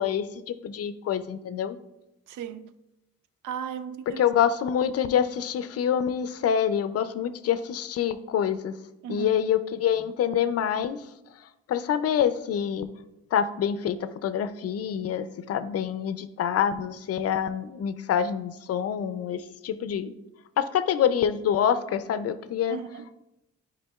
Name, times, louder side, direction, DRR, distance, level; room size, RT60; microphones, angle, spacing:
voice 1, 0.0-1.8 4.2-8.7 9.1-11.0 11.7-12.9 13.3-14.0 14.2-20.1 20.6-22.8, left 8 dB, 55° left, 0.5 m, -26 dB
voice 2, 2.3-2.7 3.4-4.2 9.0-9.3 22.7-23.1, right 8 dB, 80° right, 0.5 m, -36 dB
8.8 x 5.0 x 2.3 m
cardioid pair, 90°, 30 cm